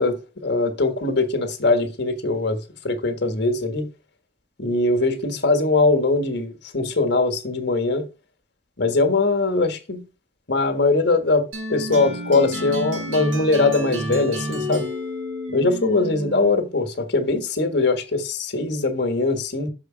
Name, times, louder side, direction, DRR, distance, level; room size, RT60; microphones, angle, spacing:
voice 1, 0.0-3.9 4.6-8.1 8.8-10.0 10.5-14.8 15.5-19.7, left 3 dB, 60° left, 1.6 m, -21 dB
sound 1, 11.5-16.6, equal, 85° right, 2.0 m, -30 dB
6.8 x 5.0 x 5.1 m
head